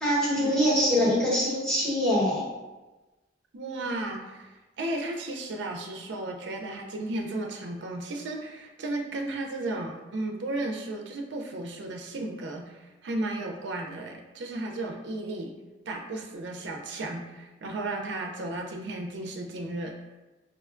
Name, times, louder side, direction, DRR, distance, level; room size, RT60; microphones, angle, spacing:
voice 1, 0.0-2.4, equal, 5° left, -8 dB, 1.1 m, -24 dB
voice 2, 3.5-15.5 15.9-19.9, right 2 dB, 65° right, 1 dB, 0.4 m, -34 dB
4.8 x 2.2 x 2.4 m, 1.1 s
head